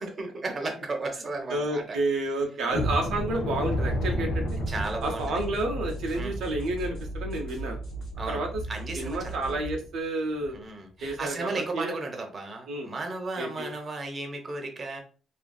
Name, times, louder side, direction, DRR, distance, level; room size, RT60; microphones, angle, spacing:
voice 1, 0.0-2.0 4.7-5.2 6.1-6.3 8.2-8.4 8.7-9.6 10.5-15.0, right 3 dB, 35° right, 3 dB, 0.7 m, -34 dB
voice 2, 1.5-4.4 5.0-7.8 8.3-8.6 8.9-10.6 11.0-12.0 12.7-12.9 13.4-13.7, right 2 dB, 80° right, 2 dB, 0.5 m, -30 dB
sound 1, 2.7-9.4 9.8-9.9 10.4-10.5 11.0-11.2, left 1 dB, 85° left, 0.5 m, -33 dB
sound 2, 4.2-9.8, right 2 dB, 65° left, 0.8 m, -37 dB
2.5 x 2.4 x 2.3 m, 0.37 s
cardioid pair, 90°, 0 cm